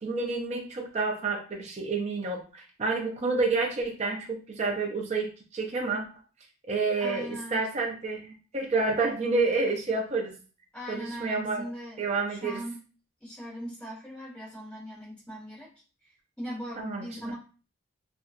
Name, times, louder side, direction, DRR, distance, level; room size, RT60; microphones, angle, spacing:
voice 1, 0.0-6.0 6.7-10.4 10.9-11.7 12.0-12.6 16.8-17.2, right 3 dB, 30° right, 1 dB, 0.4 m, -29 dB
voice 2, 7.0-7.7 10.7-12.8 13.2-15.7 16.0-16.1 16.4-17.4, equal, 5° left, -8 dB, 1.4 m, -39 dB
2.8 x 2.5 x 2.5 m, 0.37 s
head